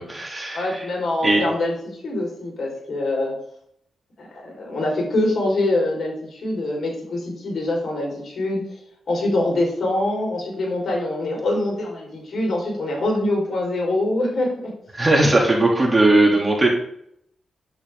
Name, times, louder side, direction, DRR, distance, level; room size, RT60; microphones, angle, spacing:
voice 1, 0.0-0.8 1.2-1.4 14.9-16.7, right 2 dB, 20° right, -2 dB, 3.2 m, -18 dB
voice 2, 0.5-3.3 4.2-8.6 9.1-14.7, left 1 dB, 60° left, -2 dB, 4.9 m, -24 dB
9.8 x 8.6 x 3.9 m, 0.70 s
cardioid pair, 75°, 0 cm